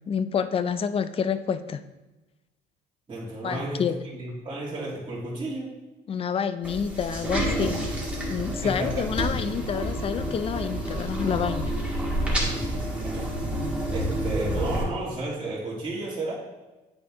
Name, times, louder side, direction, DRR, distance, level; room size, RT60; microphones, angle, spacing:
voice 1, 0.1-1.8 3.4-3.9 6.1-7.9 8.3-11.8, left 7 dB, 35° left, 12 dB, 0.4 m, -28 dB
voice 2, 3.1-5.7 8.6-9.0 12.3-16.3, right 2 dB, 30° right, -8 dB, 2.6 m, -33 dB
sound 1, 6.6-14.8, right 1 dB, 5° right, 1.9 m, -29 dB
9.5 x 4.3 x 3.5 m, 1.1 s
cardioid pair, 110°, 17 cm